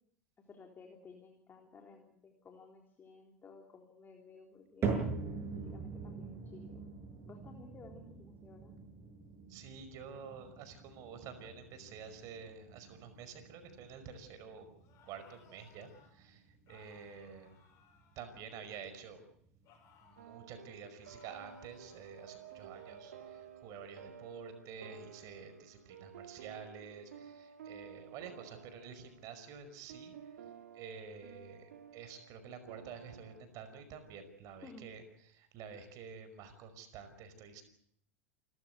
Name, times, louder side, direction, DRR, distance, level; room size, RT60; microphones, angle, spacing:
voice 1, 0.4-4.9 5.5-6.9 7.2-8.8 34.6-34.8, left 4 dB, 25° left, 3 dB, 3.7 m, -56 dB
sound 1, 4.8-21.1 21.5-22.0 22.6-22.7 23.5-23.6, right 5 dB, 35° right, 7.5 m, -44 dB
voice 2, 9.5-14.7 15.0-17.6 18.2-19.2 20.0-30.2 30.7-35.0 35.3-37.6, right 6 dB, 50° right, 10 dB, 5.3 m, -49 dB
sound 2, 14.8-16.1 16.7-18.9 19.6-20.4 21.0-23.5, left 7 dB, 45° left, 7.7 m, -65 dB
sound 3, 20.2-33.4, right 8 dB, 70° right, 2.4 m, -53 dB
28.5 x 14.5 x 8.2 m, 0.68 s
figure-of-eight pair, 80°, 8 cm